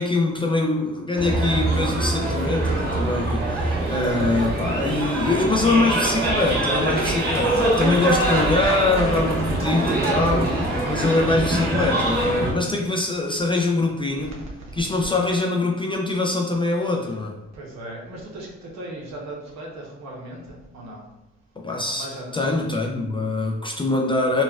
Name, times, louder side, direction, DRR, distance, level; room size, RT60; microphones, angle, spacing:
voice 1, 0.0-14.3 14.8-17.4 21.6-22.1 22.3-24.4, left 2 dB, 15° left, -1 dB, 0.3 m, -23 dB
sound 1, 1.2-12.5, right 2 dB, 30° right, 1.5 m, -23 dB
voice 2, 14.2-14.9 17.5-21.0 21.9-22.5, right 1 dB, 60° right, -2 dB, 0.9 m, -37 dB
4.1 x 2.2 x 2.3 m, 0.98 s
cardioid pair, 90°, 30 cm